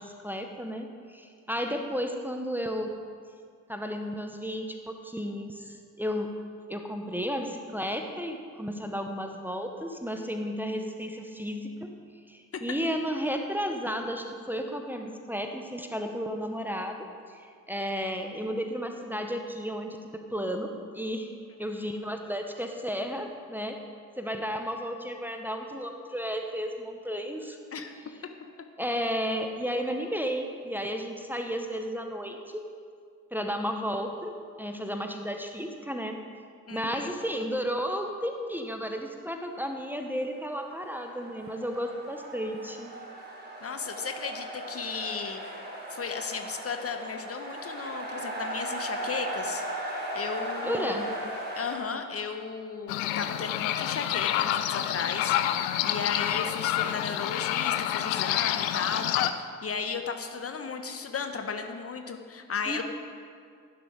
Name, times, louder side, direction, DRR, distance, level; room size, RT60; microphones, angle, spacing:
voice 1, 0.0-2.9 3.7-6.3 6.7-11.9 12.3-21.3 21.6-23.8 24.2-27.9 28.8-32.6 33.3-34.3 34.6-36.2 36.7-42.9 50.6-51.0 62.7-62.8, equal, 5° right, 4 dB, 1.4 m, -33 dB
voice 2, 21.6-22.1 27.7-27.9 36.7-37.1 43.6-45.4 45.9-49.6 50.1-51.3 51.5-59.1 59.4-62.8, left 5 dB, 30° left, 6 dB, 1.4 m, -35 dB
sound 1, 40.3-51.8, right 1 dB, 20° right, 4.4 m, -37 dB
sound 2, 52.9-59.3, left 12 dB, 65° left, 0.8 m, -28 dB
17.5 x 11.5 x 4.9 m, 2.1 s
figure-of-eight pair, 45°, 44 cm